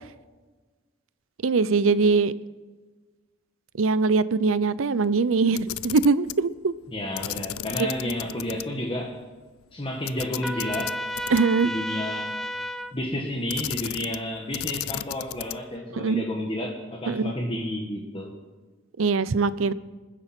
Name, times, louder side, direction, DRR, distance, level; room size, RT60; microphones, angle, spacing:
voice 1, 1.4-2.3 3.8-6.7 7.8-8.1 11.3-11.7 15.9-16.2 17.1-17.3 19.0-19.7, right 4 dB, 70° right, 17 dB, 0.6 m, -22 dB
Camera, 5.5-6.4 7.2-8.6 9.0-9.1 10.1-11.7 13.5-14.3 14.5-15.7, left 14 dB, 85° left, 0.4 m, -34 dB
voice 2, 6.9-9.2 9.7-11.0 11.6-12.4 12.9-18.3, left 1 dB, 25° left, 0 dB, 1.5 m, -31 dB
Trumpet, 10.4-12.9, equal, ahead, 0.5 m, -32 dB
27.0 x 10.0 x 4.4 m, 1.3 s
head